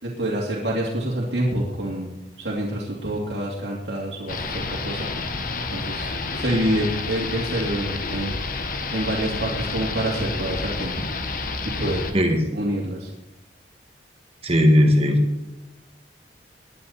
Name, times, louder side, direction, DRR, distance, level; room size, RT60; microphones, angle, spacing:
voice 1, 0.0-2.1 2.4-5.1 5.7-8.6 8.9-10.9 11.8-12.1 12.5-13.1, right 1 dB, 75° right, -5 dB, 2.6 m, -27 dB
sound 1, 4.3-12.1, left 3 dB, 50° left, 1.3 m, -29 dB
voice 2, 14.4-15.2, equal, 35° right, 3 dB, 1.6 m, -17 dB
19.5 x 11.0 x 4.3 m, 0.97 s
head